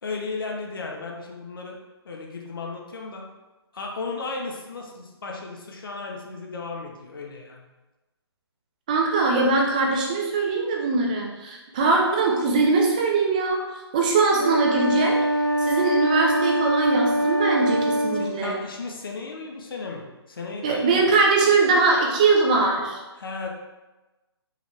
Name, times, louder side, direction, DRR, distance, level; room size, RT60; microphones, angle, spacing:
voice 1, 0.0-1.8 2.0-3.3 3.7-7.6 18.1-21.0 23.1-23.5, left 3 dB, 55° left, 0 dB, 0.9 m, -35 dB
voice 2, 8.9-13.6 13.9-15.2 15.6-18.5 20.6-23.0, right 3 dB, 20° right, -1 dB, 0.5 m, -21 dB
sound 1, 14.3-18.3, right 1 dB, 45° right, 1.1 m, -23 dB
4.9 x 3.0 x 3.4 m, 1.1 s
hypercardioid pair, 170°, 14 cm